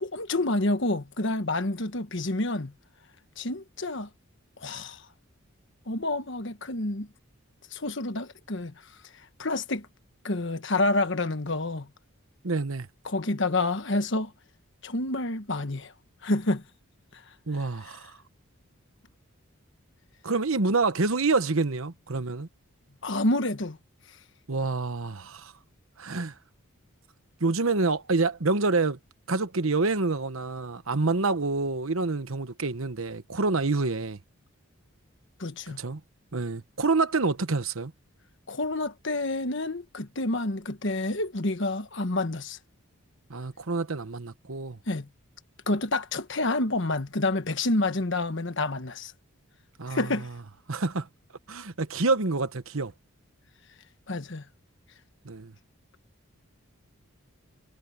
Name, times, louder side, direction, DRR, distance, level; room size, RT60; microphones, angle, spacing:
voice 1, 0.0-2.7 3.4-4.1 4.6-5.0 5.9-7.1 7.7-8.7 9.4-9.9 10.2-11.9 13.0-14.3 14.8-15.9 16.2-16.6 17.1-17.2 23.0-23.8 35.4-35.8 38.5-42.6 44.9-45.1 45.7-49.1 49.9-50.3 54.1-54.4, left 2 dB, 55° left, 1.3 m, -28 dB
voice 2, 12.4-12.9 17.5-18.1 20.2-22.5 24.5-25.5 26.0-26.3 27.4-29.0 29.3-34.2 35.8-36.0 36.3-37.9 43.3-44.8 49.8-50.1 50.7-51.1 51.5-52.9 55.2-55.5, right 3 dB, 70° right, 1.1 m, -27 dB
head